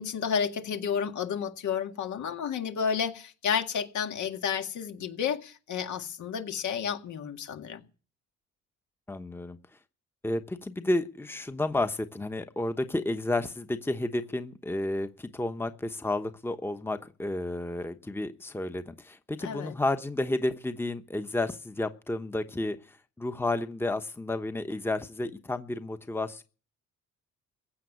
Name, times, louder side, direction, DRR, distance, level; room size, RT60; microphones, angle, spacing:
voice 1, 0.0-7.8 19.4-19.7, left 7 dB, 75° left, 2.0 m, -31 dB
voice 2, 9.1-9.6 10.2-26.4, left 2 dB, 5° left, 1.0 m, -31 dB
15.5 x 7.6 x 9.7 m
cardioid pair, 90°, 30 cm